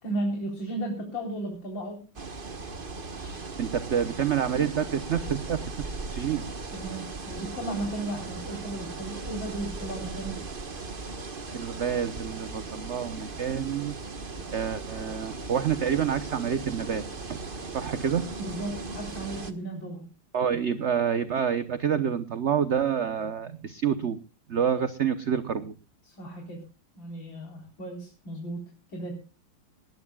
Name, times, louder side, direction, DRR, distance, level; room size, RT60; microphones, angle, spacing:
voice 1, 0.0-2.0 6.7-10.4 18.4-20.0 26.0-26.6 27.0-28.7 28.9-29.2, right 1 dB, 65° left, 1 dB, 4.9 m, -35 dB
sound 1, 2.2-19.5, right 3 dB, 30° right, 1.4 m, -38 dB
voice 2, 3.2-6.4 11.5-14.0 14.5-17.0 17.3-17.4 17.7-18.2 20.3-24.2 24.5-25.7, right 8 dB, 45° right, 12 dB, 1.0 m, -28 dB
20.5 x 18.5 x 2.4 m, 0.33 s
omnidirectional pair, 2.2 m